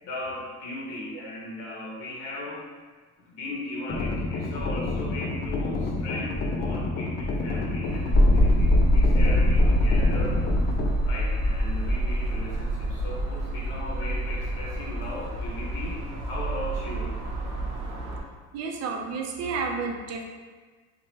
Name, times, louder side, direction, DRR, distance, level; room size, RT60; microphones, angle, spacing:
voice 1, 0.0-2.7 3.2-10.4 11.0-17.1, left 2 dB, 70° left, -4 dB, 0.8 m, -37 dB
sound 1, 3.9-10.9, left 2 dB, 30° left, 0.4 m, -29 dB
sound 2, 7.8-18.2, right 2 dB, 85° right, 0.7 m, -34 dB
sound 3, 8.1-18.2, equal, 10° right, 1.2 m, -24 dB
voice 2, 18.5-20.2, right 4 dB, 50° right, 2 dB, 0.5 m, -31 dB
2.9 x 2.2 x 2.8 m, 1.4 s
supercardioid pair, 100°, 34 cm